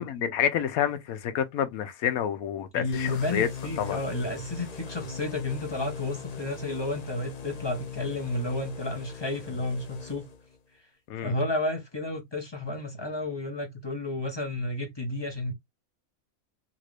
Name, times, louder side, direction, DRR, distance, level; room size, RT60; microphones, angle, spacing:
voice 1, 0.0-3.5 3.8-4.0 11.1-11.3, left 9 dB, 75° left, 1.1 m, -28 dB
voice 2, 2.7-10.3 11.2-15.5, left 2 dB, 20° left, 0.7 m, -31 dB
sound 1, 2.9-10.6, left 6 dB, 55° left, 0.4 m, -40 dB
3.6 x 2.6 x 3.1 m
omnidirectional pair, 1.6 m